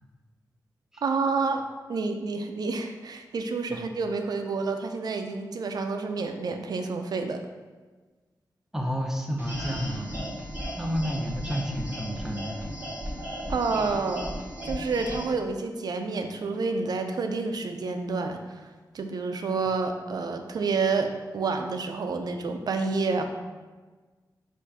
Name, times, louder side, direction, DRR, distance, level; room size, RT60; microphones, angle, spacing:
voice 1, 1.0-1.6 1.9-7.4 13.5-14.3 14.6-18.4 18.9-23.2, right 4 dB, 65° right, 5 dB, 0.4 m, -29 dB
voice 2, 8.7-10.2 10.8-12.6, equal, 5° right, 1 dB, 0.5 m, -30 dB
sound 1, 9.4-15.3, equal, 25° right, 1.5 m, -36 dB
4.5 x 2.5 x 4.0 m, 1.3 s
wide cardioid pair, 100°, 7 cm